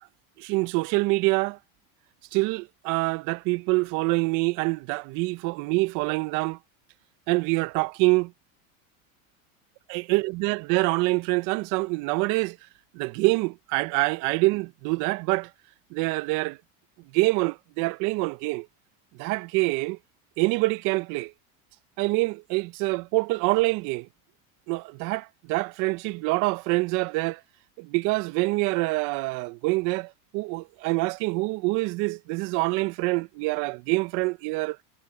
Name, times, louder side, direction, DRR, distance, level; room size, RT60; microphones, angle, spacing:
voice 1, 0.4-1.6 2.3-6.6 7.3-8.3 9.9-12.6 12.9-15.5 15.9-16.6 17.1-18.7 19.2-20.0 20.4-21.3 22.0-24.1 24.7-27.4 27.8-34.8, right 24 dB, 50° right, 0.6 m, -25 dB
cardioid pair, 155°, 40 cm